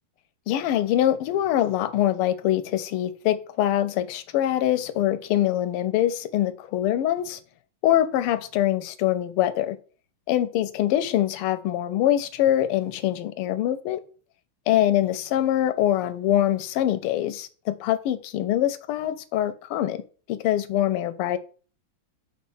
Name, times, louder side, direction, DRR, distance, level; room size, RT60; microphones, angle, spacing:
voice 1, 0.5-7.4 7.8-9.8 10.3-14.0 14.7-20.0 20.3-21.4, left 12 dB, 90° left, 1.6 m, -24 dB
5.2 x 4.4 x 5.5 m
omnidirectional pair, 2.4 m